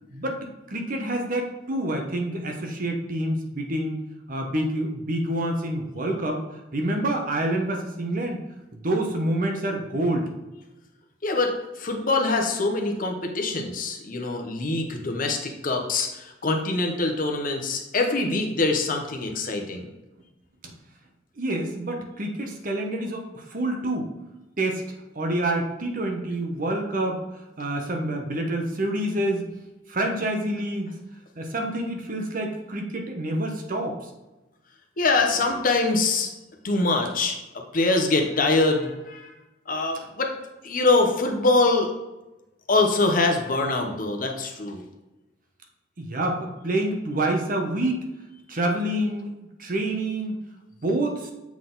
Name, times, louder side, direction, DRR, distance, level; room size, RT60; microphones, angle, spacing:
voice 1, 0.7-4.0 4.3-6.4 6.7-8.4 8.7-10.3 20.6-20.7 21.4-24.1 24.6-24.8 25.1-27.2 27.6-29.5 29.9-30.9 31.4-33.9 46.0-48.0 48.5-49.3 49.6-50.4 50.8-51.3, right 1 dB, 45° right, 2 dB, 1.0 m, -27 dB
voice 2, 11.2-19.9 35.0-36.3 36.6-39.3 39.7-40.3 40.6-41.9 42.7-44.8, left 3 dB, 45° left, 3 dB, 0.9 m, -24 dB
7.2 x 4.1 x 3.9 m, 1.0 s
head